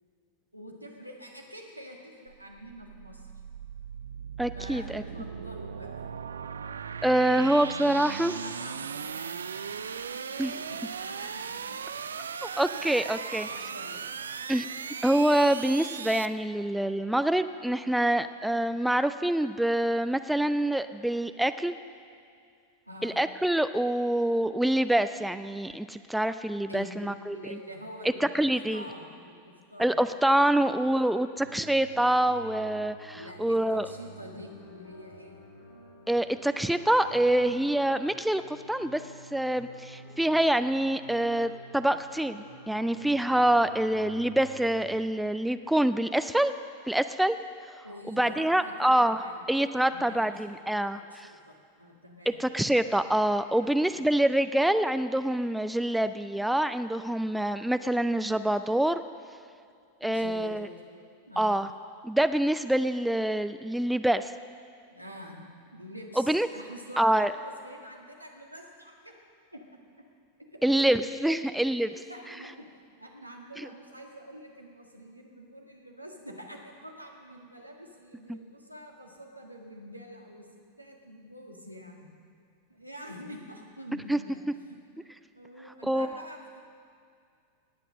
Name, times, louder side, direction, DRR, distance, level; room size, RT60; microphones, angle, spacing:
voice 1, 0.5-3.3 4.5-6.1 7.2-7.7 7.9-11.8 12.7-12.9 13.2-14.0 22.9-23.2 26.7-30.2 30.8-31.0 33.1-35.4 47.8-50.3 50.9-52.4 53.6-54.1 60.0-60.8 61.3-61.6 64.9-69.1 69.5-69.6 70.4-70.6 71.2-71.6 72.1-72.7 73.0-80.5 80.8-82.1 82.7-84.4 84.9-85.1 85.4-86.6, equal, 85° right, 1 dB, 1.7 m, -46 dB
sound 1, 2.3-16.3, right 6 dB, 70° right, 0.4 m, -38 dB
voice 2, 4.4-5.0 7.0-8.3 10.4-10.5 12.4-13.5 14.5-14.7 15.0-21.7 23.0-27.4 28.2-28.8 29.8-33.9 36.1-39.0 39.3-46.5 46.9-47.4 48.1-49.2 49.5-51.3 52.4-59.0 60.0-60.7 61.4-61.7 62.0-64.3 66.2-66.5 67.0-67.3 70.6-71.9 73.6-73.7 84.1-84.2 85.9-86.1, right 1 dB, 5° right, 11 dB, 0.4 m, -26 dB
sound 2, 31.4-45.0, equal, 55° left, 4.1 m, -49 dB
19.0 x 8.3 x 6.4 m, 2.3 s
figure-of-eight pair, 90°, 0 cm